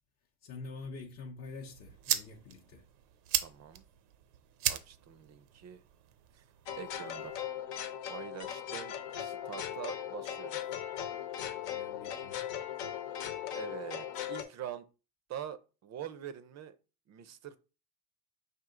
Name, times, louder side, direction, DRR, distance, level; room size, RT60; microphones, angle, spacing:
voice 1, 0.4-2.8 11.5-12.5, left 3 dB, 35° left, 0.7 m, -46 dB
sound 1, 1.4-7.4, right 11 dB, 75° right, 0.7 m, -38 dB
voice 2, 3.4-3.8 4.7-5.8 6.3-6.4 6.8-7.3 8.1-10.6 13.5-14.9 15.3-16.8 17.1-17.6, right 10 dB, 35° right, 0.5 m, -44 dB
sound 2, 6.7-14.4, left 10 dB, 65° left, 0.9 m, -38 dB
5.1 x 2.6 x 3.7 m
hypercardioid pair, 85°, 48 cm